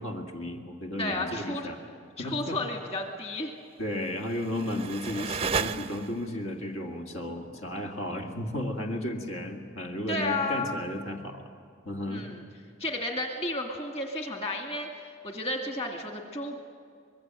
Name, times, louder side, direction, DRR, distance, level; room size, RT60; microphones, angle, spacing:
voice 1, 0.0-1.8 2.2-2.6 3.8-11.5 11.9-12.3, left 1 dB, 75° left, 2 dB, 2.1 m, -34 dB
voice 2, 1.0-1.9 2.2-3.5 10.1-10.7 12.1-12.4 12.8-16.6, left 2 dB, 30° left, 2 dB, 2.3 m, -32 dB
sound 1, 4.0-6.4, right 5 dB, 30° right, 0.5 m, -33 dB
25.5 x 21.5 x 7.7 m, 2.2 s
head